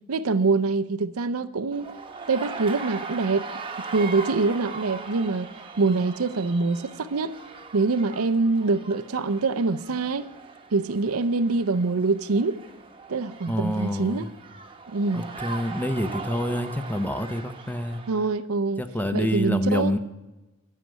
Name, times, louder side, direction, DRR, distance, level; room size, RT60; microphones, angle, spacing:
voice 1, 0.1-1.9 2.3-3.5 3.9-5.5 5.8-7.3 7.7-10.3 10.7-12.6 13.1-14.3 14.9-15.3 18.1-18.8 19.1-20.0, right 3 dB, 90° right, 0.6 m, -24 dB
sound 1, 1.7-18.3, right 4 dB, 25° right, 1.1 m, -40 dB
voice 2, 13.5-14.3 15.1-18.0 18.8-20.0, left 1 dB, 10° left, 0.7 m, -27 dB
11.0 x 6.7 x 9.1 m
head